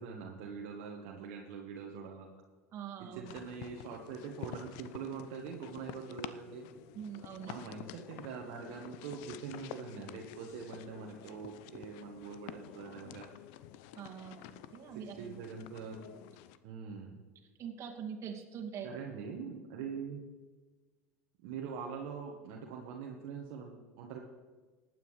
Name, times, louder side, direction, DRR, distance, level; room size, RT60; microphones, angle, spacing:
voice 1, 0.0-2.3 3.0-6.7 7.5-13.3 14.9-16.0 16.6-17.2 18.8-20.2 21.4-24.2, right 6 dB, 60° right, 0 dB, 1.4 m, -43 dB
voice 2, 2.7-3.4 6.9-7.5 14.0-14.4 14.7-15.3 17.6-18.9, right 8 dB, 40° right, 2 dB, 2.2 m, -43 dB
sound 1, 3.2-16.6, left 11 dB, 60° left, 0.6 m, -49 dB
19.5 x 9.2 x 3.3 m, 1.3 s
hypercardioid pair, 80°, 8 cm